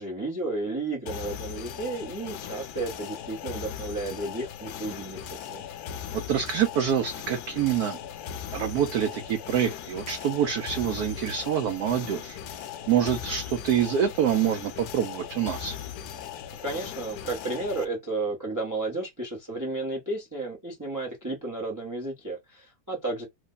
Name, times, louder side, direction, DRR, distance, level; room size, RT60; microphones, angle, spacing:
voice 1, 0.0-5.2 5.5-5.6 16.6-23.3, right 2 dB, 20° right, 0.6 m, -32 dB
sound 1, 1.1-17.9, left 9 dB, 70° left, 1.0 m, -39 dB
voice 2, 6.1-8.0 8.5-15.8, right 9 dB, 70° right, 0.9 m, -26 dB
3.2 x 2.1 x 3.7 m
omnidirectional pair, 2.0 m